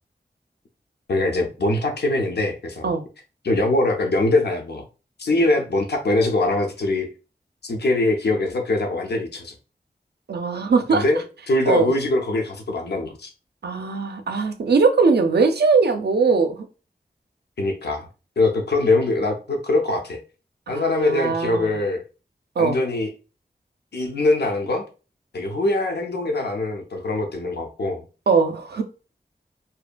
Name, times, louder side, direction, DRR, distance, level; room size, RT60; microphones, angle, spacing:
voice 1, 1.1-2.9 3.4-4.8 5.2-7.1 7.7-9.5 10.9-13.3 17.6-18.1 18.4-20.2 20.7-22.0 22.6-23.1 23.9-24.8 25.3-28.0, left 2 dB, 80° left, 0.5 m, -22 dB
voice 2, 10.3-11.0 11.6-11.9 13.6-16.7 20.7-21.7 22.6-22.8 28.3-28.8, right 4 dB, 75° right, 0.4 m, -20 dB
2.7 x 2.2 x 2.4 m
wide cardioid pair, 60°, 17 cm